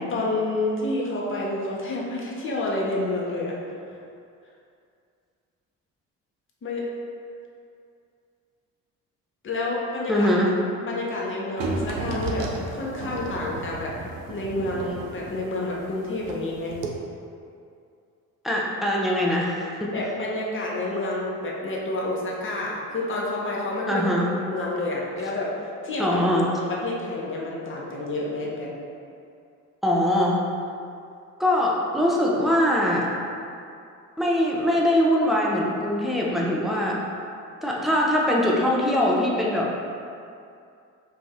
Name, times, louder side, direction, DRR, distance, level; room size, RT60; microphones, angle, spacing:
voice 1, 0.1-3.6 6.6-6.9 9.4-10.3 10.8-14.0 14.3-16.7 19.9-24.1 24.4-25.5 25.8-26.2 26.6-28.7, left 2 dB, 30° left, -3 dB, 0.6 m, -29 dB
voice 2, 10.1-10.5 18.4-19.9 23.9-24.3 26.0-26.5 29.8-30.4 31.4-33.1 34.2-37.0 37.6-39.7, left 1 dB, ahead, -4 dB, 0.3 m, -22 dB
sound 1, 11.6-16.4 16.7-16.9, right 3 dB, 75° right, 0.5 m, -33 dB
2.5 x 2.0 x 3.4 m, 2.5 s
hypercardioid pair, 50°, 43 cm